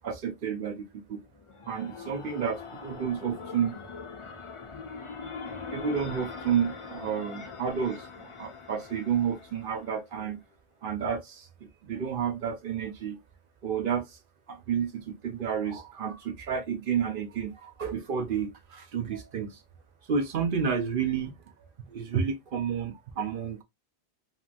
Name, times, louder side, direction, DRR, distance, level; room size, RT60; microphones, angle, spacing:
voice 1, 0.0-1.2 1.7-3.8 5.7-10.4 10.8-11.5 11.8-13.2 13.6-14.2 14.5-19.6 20.1-23.6, right 7 dB, 55° right, 0.8 m, -31 dB
sound 1, 1.2-10.0, left 5 dB, 45° left, 0.4 m, -42 dB
2.8 x 2.8 x 2.4 m
omnidirectional pair, 1.1 m